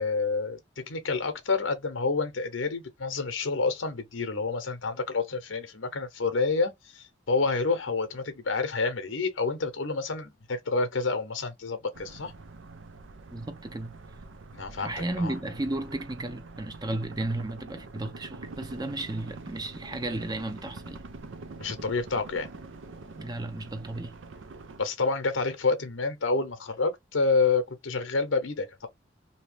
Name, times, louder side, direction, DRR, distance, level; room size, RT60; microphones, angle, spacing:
voice 1, 0.0-12.3 14.5-15.3 21.6-22.5 24.8-28.9, left 4 dB, 90° left, 0.8 m, -28 dB
sound 1, 11.9-24.8, right 3 dB, 80° right, 0.6 m, -45 dB
voice 2, 13.3-13.9 14.8-21.0 23.2-24.2, right 2 dB, 20° right, 0.5 m, -34 dB
2.9 x 2.7 x 3.2 m
head